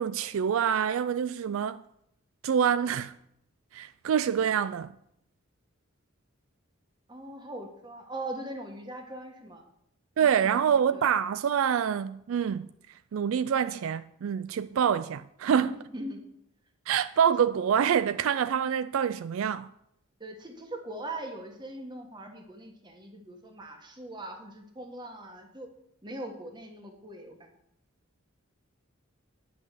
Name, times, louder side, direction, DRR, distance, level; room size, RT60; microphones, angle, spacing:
voice 1, 0.0-1.8 2.4-3.1 3.7-4.9 10.2-12.7 13.1-15.7 16.9-19.7, right 8 dB, 70° right, 0.3 m, -26 dB
voice 2, 7.1-9.6 10.2-11.0 15.6-16.2 20.2-25.7 26.0-27.4, right 1 dB, 20° right, 1.4 m, -41 dB
10.0 x 6.0 x 7.5 m
head